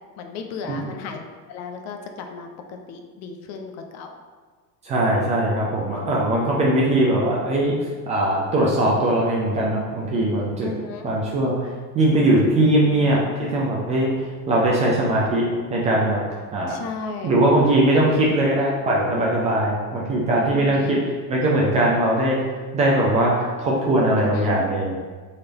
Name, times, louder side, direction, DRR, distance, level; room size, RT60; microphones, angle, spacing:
voice 1, 0.2-4.1 6.0-6.2 10.6-11.1 12.7-13.3 16.7-17.4 20.5-21.0 24.2-24.6, left 5 dB, 35° left, 4 dB, 0.5 m, -35 dB
voice 2, 4.8-7.7 8.1-10.7 11.0-11.6 11.9-14.1 14.5-16.8 17.2-21.0 21.3-22.4 22.7-25.0, right 1 dB, 15° right, -4 dB, 0.3 m, -20 dB
3.9 x 3.2 x 4.0 m, 1.5 s
figure-of-eight pair, 75°, 49 cm